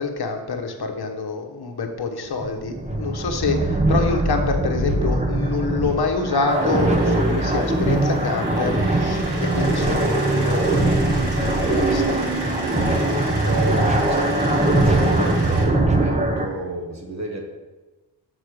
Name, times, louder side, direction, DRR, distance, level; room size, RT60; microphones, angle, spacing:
voice 1, 0.0-12.2, left 4 dB, 60° left, 3 dB, 1.0 m, -27 dB
sound 1, 2.3-16.5, right 2 dB, 15° right, 0.8 m, -21 dB
sound 2, 6.5-15.6, right 1 dB, 70° right, 2.1 m, -35 dB
voice 2, 13.4-17.4, right 1 dB, 40° right, 0 dB, 1.1 m, -30 dB
6.4 x 4.1 x 6.4 m, 1.1 s
wide cardioid pair, 90°, 43 cm